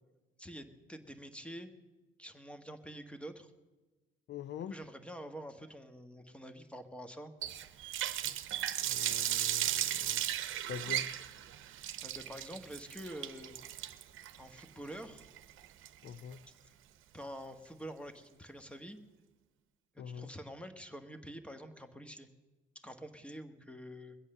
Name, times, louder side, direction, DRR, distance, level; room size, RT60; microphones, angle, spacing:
voice 1, 0.4-1.7 2.2-3.5 4.7-7.3 12.0-13.5 14.4-15.2 17.1-19.0 19.9-22.3 22.8-24.2, equal, 5° left, 8 dB, 1.2 m, -47 dB
voice 2, 4.3-4.7 8.8-10.3 10.5-11.1 16.0-16.4 20.0-20.3, left 8 dB, 65° left, 13 dB, 0.6 m, -44 dB
Water tap faucet, 7.4-16.3, right 12 dB, 80° right, 0.8 m, -36 dB
21.5 x 8.2 x 6.7 m, 1.2 s
cardioid pair, 90°, 20 cm